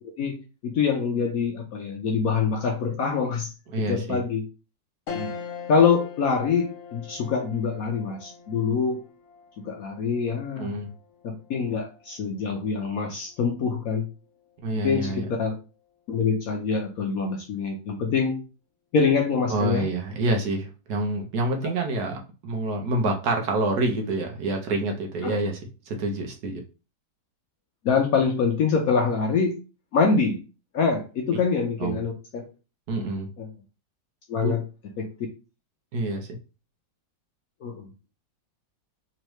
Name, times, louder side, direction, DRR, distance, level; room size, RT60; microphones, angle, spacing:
voice 1, 0.0-3.5 3.8-4.4 5.1-5.3 5.7-9.0 9.6-10.7 11.2-14.1 14.7-15.5 16.1-18.4 18.9-19.9 25.2-25.4 27.8-29.6 29.9-30.4 30.7-32.4 33.4-33.5 34.3-34.6 35.0-35.1 37.6-37.9, left 5 dB, 65° left, 3 dB, 0.9 m, -25 dB
voice 2, 3.7-4.2 10.6-10.9 14.6-15.3 19.5-25.6 25.9-26.6 31.8-32.0 32.9-33.3 34.4-34.5 35.9-36.3, right 2 dB, 65° right, 3 dB, 1.2 m, -27 dB
sound 1, 5.1-14.7 15.1-15.2 16.6-17.0, left 6 dB, 85° left, 0.6 m, -43 dB
3.6 x 3.1 x 3.0 m, 0.32 s
omnidirectional pair, 2.0 m